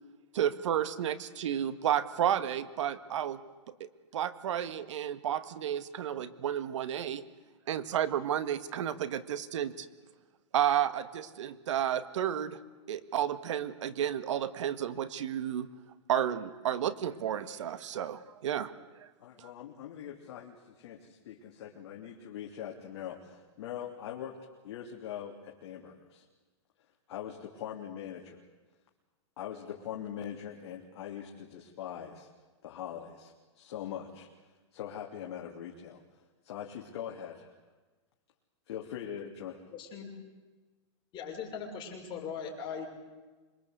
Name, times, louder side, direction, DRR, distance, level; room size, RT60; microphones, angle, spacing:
voice 1, 0.3-3.4 3.7-7.2 7.7-9.9 10.5-12.6 12.9-15.7 16.1-18.7 19.0-19.1 19.4-19.5, right 10 dB, 75° right, 13 dB, 1.7 m, -32 dB
voice 2, 19.2-24.4 24.6-26.2 27.1-28.4 29.4-32.3 32.6-34.3 34.7-36.0 36.4-37.6 38.7-39.6, left 9 dB, 60° left, 0 dB, 3.1 m, -42 dB
voice 3, 39.7-40.1 41.1-42.9, left 6 dB, 30° left, 1 dB, 5.9 m, -39 dB
26.5 x 22.5 x 8.1 m, 1.3 s
supercardioid pair, 150°, 16 cm